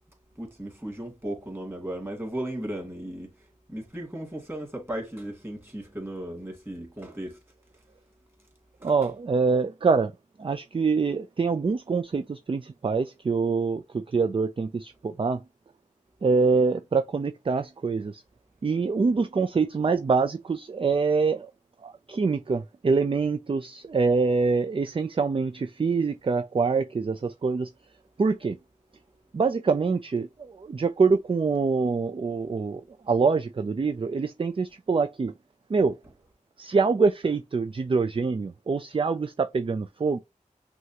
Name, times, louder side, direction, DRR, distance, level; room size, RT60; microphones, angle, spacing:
voice 1, 0.4-3.3 3.7-7.4 8.8-8.9, right 1 dB, 15° right, 2.3 m, -36 dB
voice 2, 8.8-10.1 10.4-15.4 16.2-18.2 18.6-21.5 21.8-27.7 28.2-28.6 29.3-32.8 33.1-35.3 35.7-35.9 36.6-40.2, right 4 dB, 40° right, 0.4 m, -25 dB
6.1 x 2.4 x 2.8 m
wide cardioid pair, 45°, 14 cm